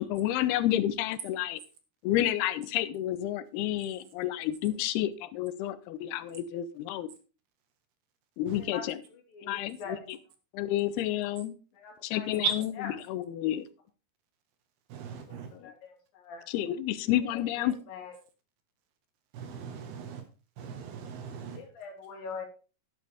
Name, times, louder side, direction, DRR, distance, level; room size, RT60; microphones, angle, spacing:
voice 1, 0.0-1.6 2.0-7.1 8.4-9.0 9.4-10.2 10.5-11.5 12.0-12.7 13.1-13.7 15.5-15.7 16.5-17.7, left 13 dB, 90° left, 15 dB, 2.7 m, -30 dB
voice 2, 8.5-8.8 9.1-10.2 11.7-12.4 12.8-12.9 15.2-16.4 17.3-18.1 21.4-22.5, left 5 dB, 65° left, 3 dB, 3.7 m, -43 dB
voice 3, 14.9-15.5 19.3-20.2 20.6-21.6, right 6 dB, 80° right, 6 dB, 3.5 m, -36 dB
11.5 x 9.1 x 3.5 m, 0.34 s
omnidirectional pair, 4.4 m